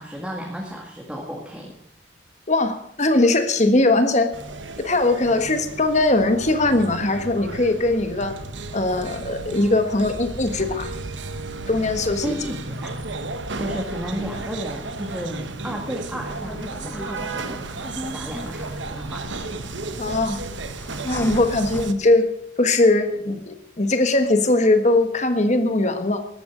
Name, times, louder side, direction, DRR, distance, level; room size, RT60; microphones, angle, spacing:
voice 1, 0.0-1.7 12.2-12.9 13.6-17.6 18.1-19.3, equal, 5° right, -2 dB, 1.9 m, -33 dB
voice 2, 2.5-4.3 4.8-8.4 8.7-10.9 11.7-12.4 20.0-20.4 21.0-22.3 22.6-26.3, left 2 dB, 35° left, 8 dB, 1.4 m, -20 dB
sound 1, 4.3-21.9, right 3 dB, 65° right, 1.2 m, -34 dB
sound 2, 16.2-21.9, left 1 dB, 10° left, 1.1 m, -38 dB
14.5 x 11.5 x 6.2 m, 0.73 s
head